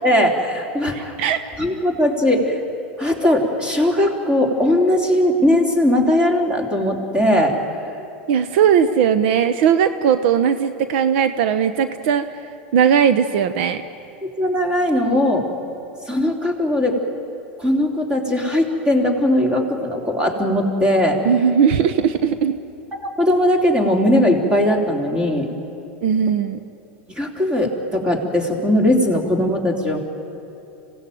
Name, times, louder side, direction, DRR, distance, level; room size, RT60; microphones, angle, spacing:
voice 1, 0.0-1.2 1.6-2.6 3.0-7.6 14.2-15.4 16.1-17.0 17.6-21.2 22.9-25.5 27.1-30.0, left 1 dB, 15° right, 3 dB, 3.6 m, -19 dB
voice 2, 0.9-1.4 8.3-12.3 12.7-13.8 21.2-22.5 26.0-26.6, right 8 dB, 65° right, 12 dB, 0.9 m, -18 dB
26.0 x 17.0 x 9.3 m, 3.0 s
supercardioid pair, 120°, 6 cm